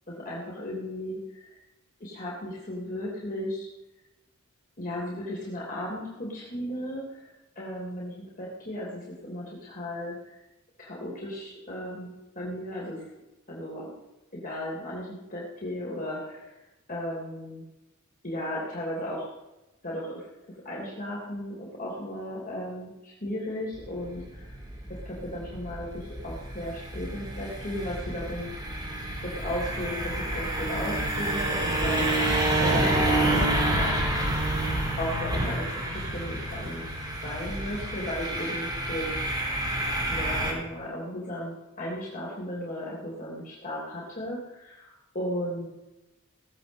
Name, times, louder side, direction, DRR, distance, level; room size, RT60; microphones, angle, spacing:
voice 1, 0.1-1.5 2.0-3.7 4.8-10.4 10.8-13.1 13.5-13.9 14.3-16.4 16.9-17.6 18.2-19.3 19.8-24.5 24.9-28.5 29.2-32.1 32.6-34.0 35.0-36.9 37.2-39.1 40.1-45.7, left 1 dB, 40° left, -5 dB, 3.2 m, -35 dB
sound 1, 23.7-40.5, right 1 dB, 20° right, 3.6 m, -28 dB
18.0 x 7.9 x 7.5 m, 1.0 s
head